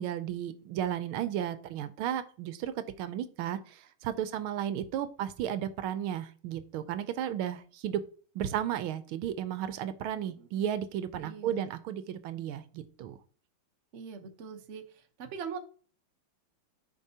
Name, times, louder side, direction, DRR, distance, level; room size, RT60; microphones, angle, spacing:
voice 1, 0.0-8.0 8.3-13.2, right 10 dB, 80° right, 12 dB, 1.5 m, -34 dB
voice 2, 10.4-10.7 11.2-11.7 13.9-15.6, right 6 dB, 45° right, 5 dB, 1.0 m, -42 dB
10.5 x 5.3 x 2.8 m, 0.41 s
omnidirectional pair, 2.3 m